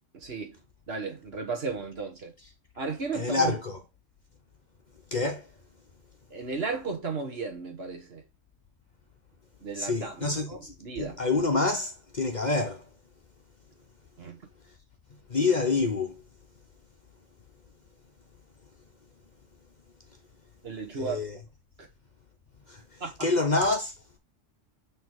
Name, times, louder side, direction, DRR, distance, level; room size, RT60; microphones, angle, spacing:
voice 1, 0.1-0.6 0.9-2.3 2.8-3.5 6.3-8.2 9.6-11.2 14.2-14.4 20.6-21.2 23.0-23.1, right 4 dB, 55° right, 1.5 m, -34 dB
voice 2, 3.1-3.8 5.1-5.5 9.7-12.8 15.3-16.2 20.9-21.4 22.7-22.8 23.2-23.9, left 3 dB, 40° left, 0.9 m, -27 dB
6.2 x 3.4 x 4.6 m
omnidirectional pair, 1.3 m